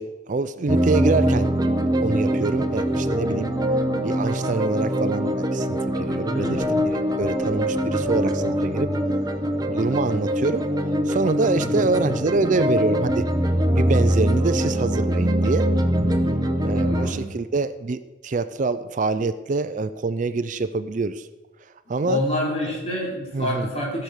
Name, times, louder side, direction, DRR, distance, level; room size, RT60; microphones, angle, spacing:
voice 1, 0.0-1.7 2.0-3.5 4.0-6.8 7.2-8.9 9.7-10.7 11.1-13.3 13.7-15.7 16.6-21.3 21.9-22.2 23.3-23.7, right 3 dB, 40° right, 13 dB, 0.4 m, -25 dB
sound 1, 0.7-17.1, equal, 20° right, 0.9 m, -23 dB
voice 2, 6.3-6.8 11.5-11.9 16.8-17.3 21.9-24.0, left 1 dB, 35° left, -2 dB, 3.6 m, -28 dB
15.5 x 6.9 x 6.4 m, 1.1 s
head